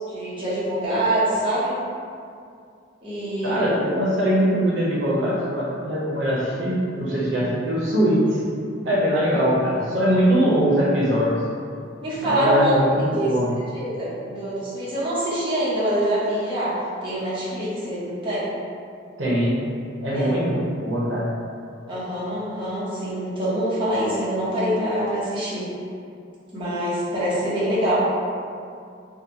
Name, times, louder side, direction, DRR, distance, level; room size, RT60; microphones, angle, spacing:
voice 1, 0.1-1.7 3.0-3.7 12.0-12.7 13.0-13.3 13.7-16.7 17.0-18.5 20.1-20.4 21.9-25.7 26.5-28.0, right 1 dB, 25° right, -10 dB, 0.7 m, -25 dB
voice 2, 3.4-8.4 8.8-11.4 12.2-13.5 19.2-19.6 20.0-21.3, equal, 80° right, -6 dB, 0.6 m, -21 dB
2.7 x 2.1 x 2.7 m, 2.4 s
head